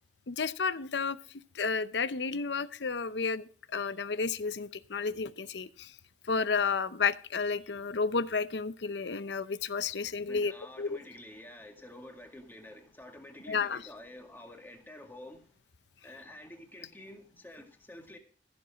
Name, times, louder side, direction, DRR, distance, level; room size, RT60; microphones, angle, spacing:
voice 1, 0.3-1.2 1.5-5.9 6.3-10.5 10.8-11.0 13.5-13.9, left 5 dB, 80° left, 0.7 m, -31 dB
voice 2, 10.3-15.5 16.0-18.2, left 1 dB, 10° left, 2.0 m, -49 dB
15.0 x 7.0 x 5.1 m
head